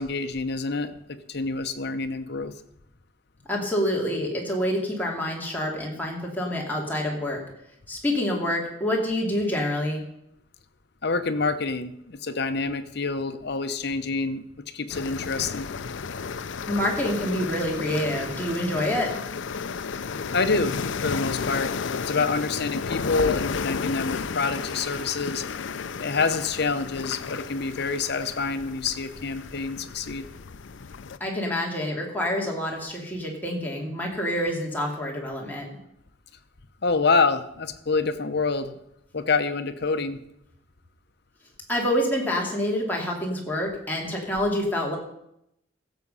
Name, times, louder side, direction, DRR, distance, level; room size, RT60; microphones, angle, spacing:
voice 1, 0.0-2.5 11.0-14.4 14.7-15.7 20.3-20.7 21.0-25.4 26.0-30.3 36.8-38.8 39.1-40.2, left 4 dB, 60° left, 9 dB, 0.9 m, -27 dB
voice 2, 3.5-7.4 7.9-10.0 16.7-19.2 31.2-35.7 41.7-45.0, left 1 dB, 10° left, -2 dB, 2.7 m, -27 dB
sound 1, 14.9-31.2, left 5 dB, 80° left, 0.5 m, -33 dB
16.0 x 7.2 x 5.5 m, 0.78 s
head